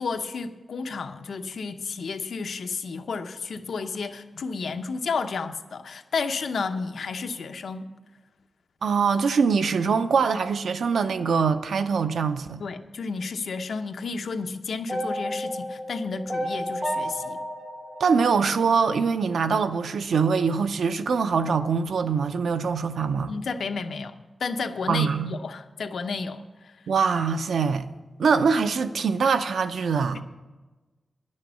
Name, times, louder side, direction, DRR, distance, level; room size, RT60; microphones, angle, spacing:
voice 1, 0.0-7.9 12.6-17.4 23.3-24.1 24.4-26.7 30.1-30.2, left 4 dB, 70° left, 0.7 m, -32 dB
voice 2, 8.8-12.6 18.0-23.3 24.9-25.3 26.9-27.9 28.2-30.2, right 5 dB, 85° right, 0.6 m, -23 dB
sound 1, 14.9-19.1, equal, 10° right, 1.3 m, -32 dB
10.5 x 6.5 x 8.4 m
wide cardioid pair, 170°, 0 cm